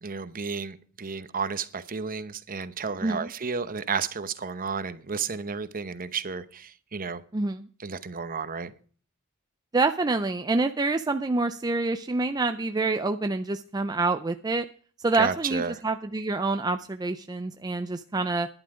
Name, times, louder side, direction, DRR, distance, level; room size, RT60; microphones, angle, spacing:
voice 1, 0.0-7.2 7.8-8.7 15.2-15.7, right 5 dB, 40° right, 0.9 m, -32 dB
voice 2, 7.3-7.7 9.7-14.7 15.0-18.5, right 3 dB, 20° right, 0.4 m, -27 dB
11.0 x 11.0 x 4.9 m
head